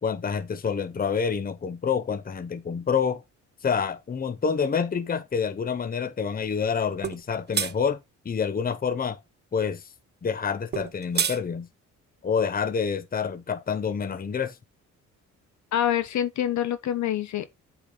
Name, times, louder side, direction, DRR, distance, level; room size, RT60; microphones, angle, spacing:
voice 1, 0.0-3.2 3.6-8.0 8.2-9.2 9.5-9.8 10.2-11.7 12.2-14.6, left 6 dB, 30° left, 0.9 m, -27 dB
sound 1, 7.0-7.2 7.5-7.7 10.7-11.4, right 7 dB, 35° right, 0.8 m, -26 dB
voice 2, 15.7-17.6, left 11 dB, 70° left, 1.2 m, -26 dB
8.6 x 5.0 x 3.9 m
cardioid pair, 90°, 30 cm